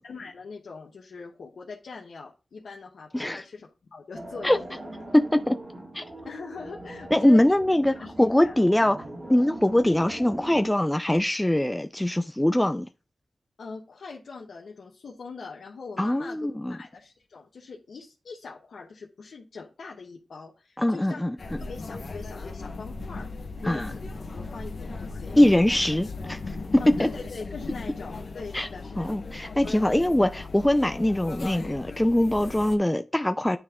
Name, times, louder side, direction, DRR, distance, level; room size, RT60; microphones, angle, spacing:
voice 1, 0.0-4.8 6.2-7.5 7.9-8.5 13.6-21.2 21.6-24.1 24.3-25.4 26.8-29.2 29.6-29.9, left 4 dB, 90° left, 1.0 m, -42 dB
voice 2, 3.1-3.4 4.4-4.6 5.1-5.6 5.9-6.0 7.1-9.0 9.3-12.9 16.0-16.7 20.8-21.6 23.6-23.9 25.3-26.4 26.7-27.1 28.5-28.7 29.0-33.6, left 1 dB, 10° left, 0.4 m, -22 dB
sound 1, 4.1-10.7, right 1 dB, 60° right, 2.4 m, -41 dB
sound 2, 21.4-32.8, left 3 dB, 65° left, 1.1 m, -37 dB
9.6 x 3.4 x 3.6 m
cardioid pair, 65°, 0 cm